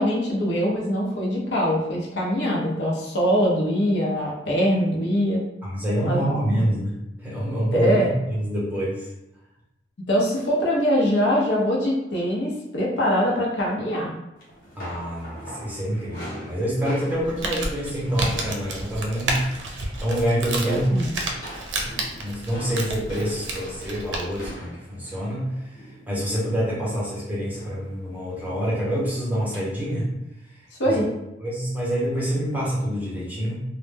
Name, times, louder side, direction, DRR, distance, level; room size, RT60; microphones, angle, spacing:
voice 1, 0.0-5.4 6.0-6.6 7.7-8.1 10.1-14.1 20.6-21.1 30.8-31.1, equal, 75° left, -3 dB, 0.7 m, -23 dB
voice 2, 5.6-9.1 14.8-20.9 21.7-25.7 26.1-30.1 30.9-31.0 31.4-33.6, equal, 10° right, -7 dB, 0.7 m, -26 dB
sound 1, 14.4-18.9 19.2-19.5 19.8-20.3 20.7-26.7 27.6-27.9 28.3-28.5 29.5-29.6, equal, 50° left, 0.9 m, -43 dB
Crumpling crinkling, 17.1-24.5, right 2 dB, 85° right, 0.4 m, -31 dB
2.1 x 2.1 x 3.3 m, 0.91 s
head